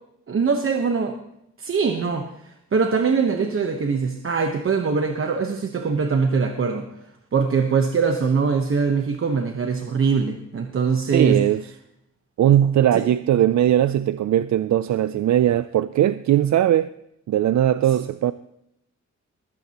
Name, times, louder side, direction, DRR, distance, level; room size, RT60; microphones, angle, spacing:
voice 1, 0.3-1.1 1.6-6.9 7.3-11.4 12.9-13.1, right 5 dB, 45° right, 1.1 m, -22 dB
voice 2, 11.1-11.7 12.4-16.9 17.3-18.3, right 11 dB, 65° right, 0.4 m, -19 dB
20.5 x 16.0 x 3.0 m
wide cardioid pair, 155°, 30 cm